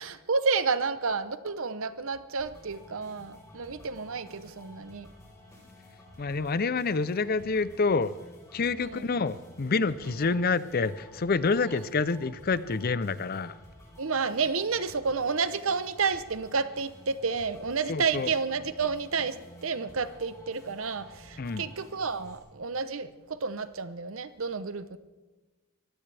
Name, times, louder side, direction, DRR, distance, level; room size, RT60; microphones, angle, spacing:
voice 1, 0.0-5.1 8.8-9.1 11.7-11.8 14.0-25.0, right 5 dB, 65° right, 0.8 m, -30 dB
sound 1, 2.4-22.4, equal, 15° left, 4.1 m, -52 dB
voice 2, 6.2-8.1 8.5-13.5 17.9-18.3 21.4-21.6, left 4 dB, 40° left, 0.5 m, -27 dB
23.0 x 16.0 x 3.4 m
head